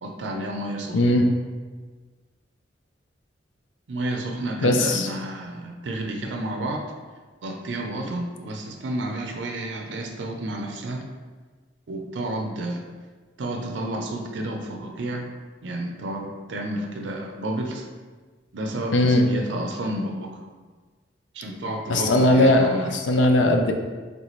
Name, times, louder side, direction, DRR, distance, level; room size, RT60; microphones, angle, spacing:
voice 1, 0.0-1.0 3.9-6.9 7.4-11.0 11.9-12.8 13.4-15.3 15.6-17.9 18.5-20.4 21.3-22.9, right 1 dB, 80° right, 3 dB, 0.5 m, -31 dB
voice 2, 0.9-1.2 4.6-5.1 18.9-19.3 21.9-23.7, left 1 dB, 85° left, 4 dB, 0.5 m, -19 dB
3.4 x 3.0 x 4.0 m, 1.4 s
head